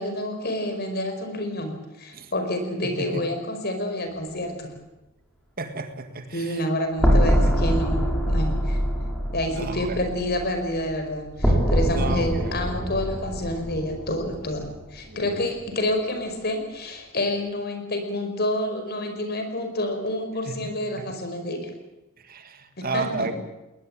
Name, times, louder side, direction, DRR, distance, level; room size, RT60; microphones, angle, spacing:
voice 1, 0.0-4.7 6.3-8.8 9.3-21.7 22.8-23.3, left 1 dB, 50° left, 6 dB, 5.2 m, -28 dB
voice 2, 2.8-3.2 5.6-6.7 7.2-7.3 9.5-10.0 11.9-12.5 15.1-15.4 20.5-20.7 21.0-21.1 22.2-23.4, right 3 dB, 45° right, 9 dB, 2.0 m, -32 dB
sound 1, 7.0-15.0, equal, 5° left, 6.3 m, -24 dB
20.5 x 20.5 x 8.9 m, 0.98 s
head